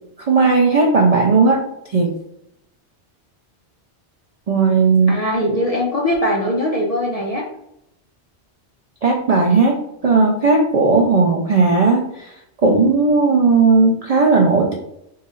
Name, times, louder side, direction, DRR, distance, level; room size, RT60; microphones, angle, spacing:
voice 1, 0.3-1.6 1.9-2.1 4.5-5.2 9.0-9.8 10.0-12.3 12.6-14.7, right 4 dB, 60° right, 0 dB, 0.3 m, -15 dB
voice 2, 5.1-7.4, left 1 dB, 50° left, -2 dB, 0.4 m, -21 dB
2.8 x 2.4 x 4.2 m, 0.80 s
omnidirectional pair, 1.2 m